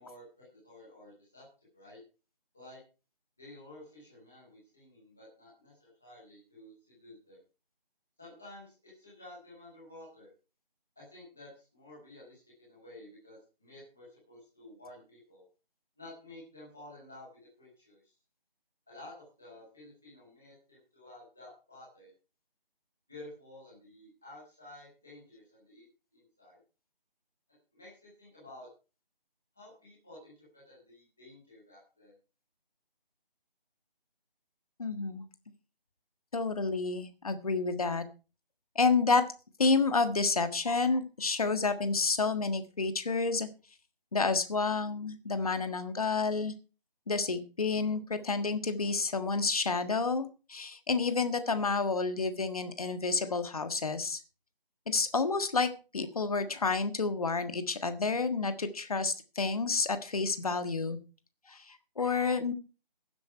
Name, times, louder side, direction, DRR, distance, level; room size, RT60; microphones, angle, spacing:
voice 1, 0.0-1.4 1.7-2.0 2.5-2.8 3.4-7.4 8.2-10.3 11.0-15.4 16.0-17.3 17.6-18.1 18.9-22.1 23.1-25.9 26.1-26.6 27.7-28.7 29.5-32.1, left 1 dB, ahead, -8 dB, 0.8 m, -52 dB
voice 2, 34.8-35.2 36.3-38.0 38.7-39.2 39.6-43.5 44.1-46.5 47.1-54.2 54.9-61.0 61.5-62.5, left 4 dB, 40° left, 9 dB, 1.6 m, -29 dB
16.0 x 10.5 x 4.5 m, 0.34 s
figure-of-eight pair, 165°, 29 cm